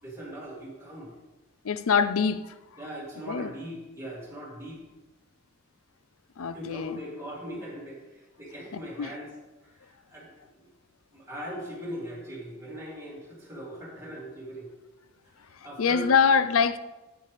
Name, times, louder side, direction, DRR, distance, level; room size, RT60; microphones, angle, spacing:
voice 1, 0.0-1.1 2.8-4.8 6.5-9.3 9.6-10.7 11.1-14.7 15.6-16.1, equal, 15° right, 2.9 m, -40 dB
voice 2, 1.6-2.5 3.3-3.5 6.4-7.0 8.7-9.1 15.8-16.8, left 6 dB, 80° left, 0.5 m, -24 dB
9.6 x 9.2 x 3.4 m
head